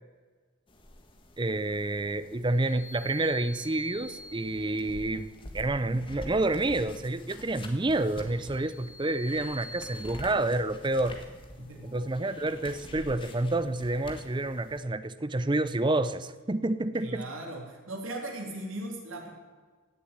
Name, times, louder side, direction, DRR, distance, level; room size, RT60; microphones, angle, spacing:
sound 1, 0.7-14.8, left 1 dB, 25° left, 1.6 m, -47 dB
voice 1, 1.4-11.2 11.8-17.3, right 2 dB, 20° right, 14 dB, 0.5 m, -29 dB
sound 2, 2.5-5.0 8.0-10.1, left 1 dB, 45° left, 4.9 m, -46 dB
voice 2, 17.0-19.3, right 1 dB, 75° right, 1 dB, 3.3 m, -38 dB
16.5 x 7.5 x 8.8 m, 1.4 s
head